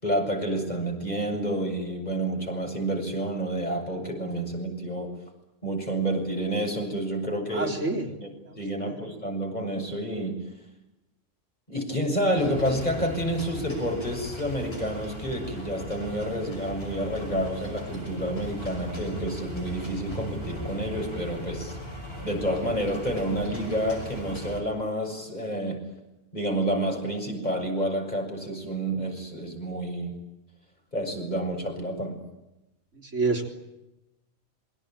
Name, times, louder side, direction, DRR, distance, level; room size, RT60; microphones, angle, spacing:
voice 1, 0.0-5.1 5.6-7.7 8.2-8.3 8.6-10.4 11.7-21.8 22.2-25.8 26.3-30.1 30.9-32.2, right 1 dB, 35° left, 3 dB, 7.0 m, -29 dB
voice 2, 7.5-8.1 8.5-9.0 32.9-33.4, right 3 dB, 70° right, 1 dB, 3.9 m, -29 dB
sound 1, 12.4-24.6, equal, 50° left, 6.3 m, -38 dB
27.0 x 23.5 x 8.9 m, 0.94 s
omnidirectional pair, 1.3 m